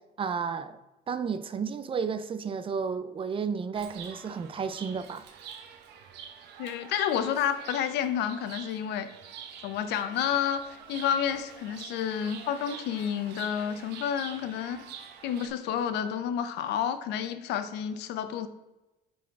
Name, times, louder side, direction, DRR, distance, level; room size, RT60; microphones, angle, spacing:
voice 1, 0.2-0.8 1.1-5.2, right 6 dB, 30° right, 0.4 m, -32 dB
Chirp tweet, 3.7-15.5, right 7 dB, 90° right, 0.8 m, -46 dB
voice 2, 6.6-9.1 9.6-10.6 10.9-14.9 15.2-18.5, left 9 dB, 85° left, 0.6 m, -30 dB
9.0 x 4.2 x 3.6 m
cardioid pair, 110°, 17 cm